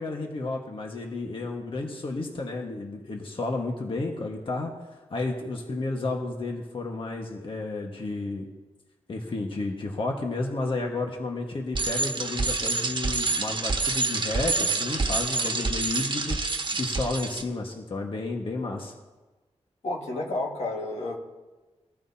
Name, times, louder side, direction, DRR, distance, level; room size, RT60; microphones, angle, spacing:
voice 1, 0.0-4.7 5.1-8.5 9.1-18.9, left 2 dB, 50° left, 1 dB, 1.6 m, -32 dB
Bicycle, 11.7-17.4, right 3 dB, 45° right, 1.2 m, -27 dB
voice 2, 19.8-21.2, left 2 dB, 80° left, -1 dB, 1.9 m, -31 dB
21.0 x 13.5 x 2.9 m, 1.2 s
wide cardioid pair, 100°, 11 cm